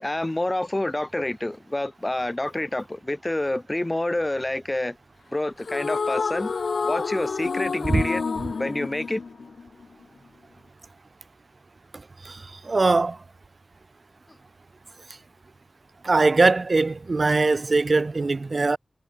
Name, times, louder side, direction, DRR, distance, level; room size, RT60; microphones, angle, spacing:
voice 1, 0.0-5.0 5.3-6.5 6.8-8.2 8.6-9.2, left 1 dB, 25° left, 0.9 m, -28 dB
sound 1, 5.6-10.0, left 5 dB, 90° left, 0.4 m, -29 dB
voice 2, 12.7-13.2 16.0-18.8, right 3 dB, 55° right, 0.7 m, -21 dB
wide cardioid pair, 70°, 0 cm